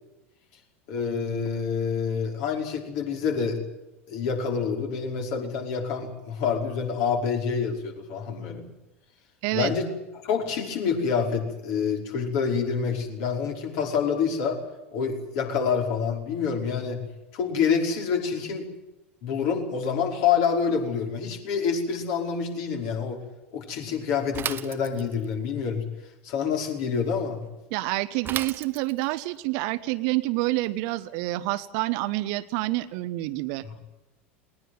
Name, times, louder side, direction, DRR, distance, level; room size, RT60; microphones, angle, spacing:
voice 1, 0.9-3.6 4.1-8.7 9.5-9.9 10.2-14.6 14.9-17.0 17.3-18.7 19.2-23.2 23.5-25.9 26.2-27.4 33.6-33.7, left 6 dB, 55° left, 2 dB, 5.3 m, -27 dB
voice 2, 9.4-9.7 27.7-33.6, right 19 dB, 55° right, 13 dB, 1.1 m, -28 dB
Bicycle / Mechanisms, 24.3-25.3 28.2-29.2, right 9 dB, 30° right, 1.0 m, -34 dB
20.0 x 19.5 x 9.6 m, 0.99 s
figure-of-eight pair, 80°, 7 cm